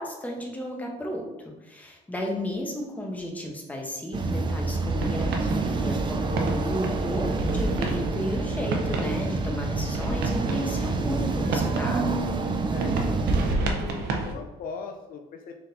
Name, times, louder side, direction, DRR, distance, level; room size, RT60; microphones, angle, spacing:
voice 1, 0.0-12.2, equal, 10° left, 0 dB, 0.8 m, -33 dB
sound 1, 4.1-13.5, right 3 dB, 30° right, 0.4 m, -28 dB
sound 2, 5.0-14.3, right 3 dB, 80° right, 0.7 m, -31 dB
voice 2, 13.7-15.5, left 5 dB, 55° left, 5 dB, 0.4 m, -39 dB
4.1 x 3.8 x 2.6 m, 1.1 s
cardioid pair, 110°, 17 cm